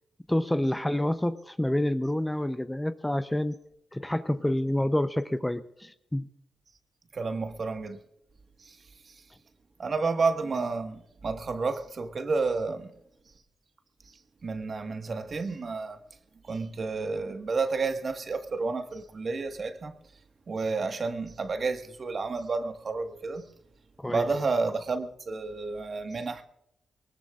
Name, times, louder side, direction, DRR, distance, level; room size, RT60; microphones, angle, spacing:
voice 1, 0.3-3.6 3.9-6.3 24.0-24.2, left 1 dB, 10° left, 0.7 m, -28 dB
voice 2, 7.1-8.0 8.6-8.8 9.0-9.2 9.8-12.9 14.1-16.0 16.4-19.9 20.5-23.5 24.1-26.4, right 4 dB, 50° right, 1.5 m, -31 dB
23.0 x 20.0 x 2.4 m
cardioid pair, 80°, 0 cm